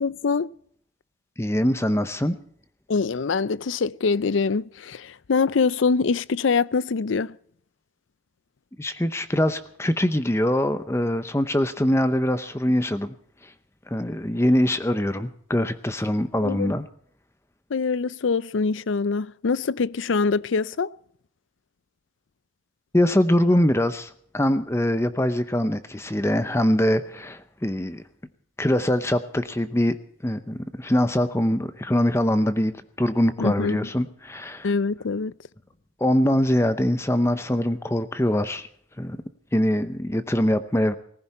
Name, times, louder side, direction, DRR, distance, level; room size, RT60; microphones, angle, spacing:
voice 1, 0.0-0.5 2.9-7.4 16.4-16.7 17.7-20.9 33.4-33.8 34.6-35.3, left 4 dB, 80° left, 0.5 m, -24 dB
voice 2, 1.4-2.4 8.8-13.1 13.9-16.9 22.9-28.0 28.6-30.0 30.2-34.7 36.0-38.7 39.0-39.2 39.5-40.9, left 1 dB, 15° left, 0.7 m, -23 dB
19.0 x 15.5 x 4.3 m
head